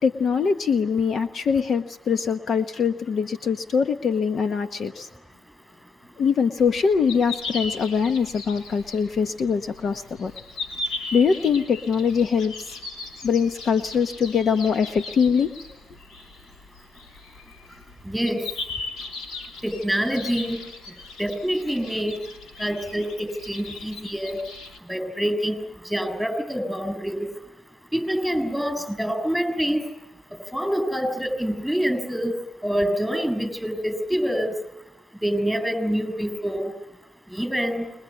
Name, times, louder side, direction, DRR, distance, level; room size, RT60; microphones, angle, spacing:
voice 1, 0.0-5.1 6.2-10.3 11.1-12.7 13.2-15.5, left 6 dB, 60° left, 8 dB, 1.1 m, -23 dB
sound 1, 6.6-24.8, left 3 dB, 90° left, 3.1 m, -38 dB
voice 2, 18.1-18.4 19.6-20.6 21.2-22.2 22.6-24.4 24.9-25.6 25.9-27.3 27.9-29.8 30.5-32.3 32.6-34.5 35.2-36.7 37.3-37.9, equal, ahead, 10 dB, 6.8 m, -26 dB
26.5 x 22.0 x 8.3 m, 0.95 s
cardioid pair, 70°, 0 cm